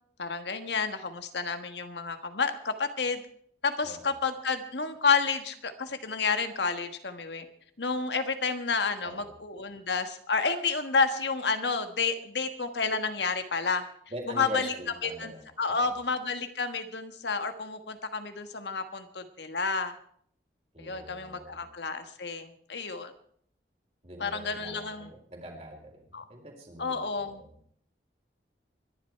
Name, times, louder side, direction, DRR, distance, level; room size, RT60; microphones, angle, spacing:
voice 1, 0.2-3.2 3.6-7.4 7.8-13.9 14.3-14.7 15.0-15.3 15.6-19.9 20.8-23.1 24.2-25.1 26.1-26.2 26.8-27.4, left 4 dB, 80° left, 8 dB, 1.5 m, -30 dB
voice 2, 3.8-4.2 9.0-9.4 14.1-15.9 20.7-21.7 24.0-27.6, right 1 dB, 35° right, 2 dB, 3.8 m, -43 dB
23.5 x 11.5 x 4.6 m, 0.62 s
head